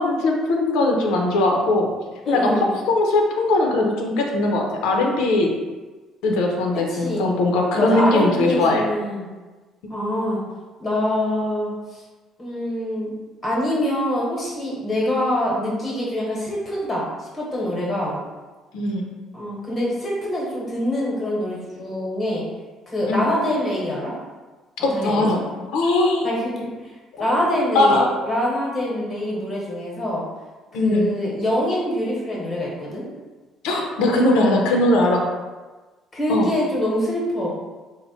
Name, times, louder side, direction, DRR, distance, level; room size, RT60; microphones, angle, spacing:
voice 1, 0.0-1.9 2.3-2.5 2.9-5.5 6.2-8.8 18.7-19.0 23.1-23.3 24.8-25.4 25.7-26.3 27.2-27.4 27.7-28.1 30.7-31.1 33.6-35.2 36.3-36.5, left 2 dB, 85° left, 1 dB, 0.6 m, -20 dB
voice 2, 2.2-2.7 6.9-7.3 7.7-9.3 9.9-10.4 10.8-12.0 12.4-13.1 13.4-18.2 19.3-22.4 22.9-24.1 24.8-25.2 26.2-26.7 27.2-28.0 28.3-30.2 30.8-33.0 36.1-37.5, left 1 dB, 15° left, -4 dB, 1.0 m, -24 dB
4.3 x 2.1 x 4.1 m, 1.3 s
cardioid pair, 175°, 0 cm